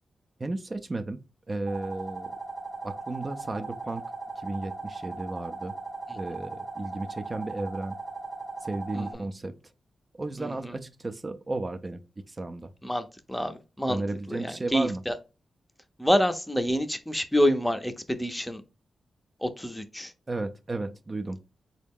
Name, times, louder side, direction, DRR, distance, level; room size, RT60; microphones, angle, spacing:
voice 1, 0.4-1.2 1.5-2.4 2.8-4.0 4.4-5.7 6.1-8.0 8.6-9.6 10.2-12.0 12.3-12.7 13.9-15.0 20.3-21.4, right 2 dB, 35° right, 0.4 m, -33 dB
sound 1, 1.7-9.1, right 3 dB, 90° right, 0.9 m, -38 dB
voice 2, 8.9-9.3 10.4-10.8 12.8-14.0 14.3-15.1 16.0-18.6 19.4-20.1, equal, 10° left, 0.6 m, -27 dB
3.6 x 2.1 x 3.5 m
cardioid pair, 50°, 0 cm